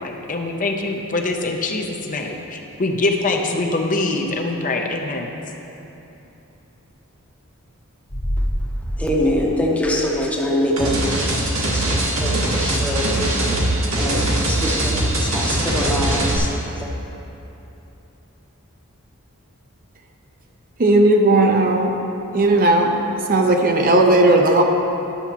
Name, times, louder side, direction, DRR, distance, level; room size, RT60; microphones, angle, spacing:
voice 1, 0.0-5.4, left 2 dB, 40° left, 2 dB, 0.6 m, -24 dB
sound 1, 8.1-10.8 11.1-11.2, equal, 65° left, 1.5 m, -27 dB
voice 2, 9.0-10.9 11.6-16.9, equal, 5° left, -2 dB, 0.8 m, -24 dB
sound 2, 10.8-16.4, right 1 dB, 75° right, 1.4 m, -21 dB
voice 3, 20.8-21.9 22.3-22.9 23.3-24.6, right 2 dB, 40° right, 3 dB, 0.5 m, -15 dB
11.0 x 6.9 x 2.9 m, 3.0 s
head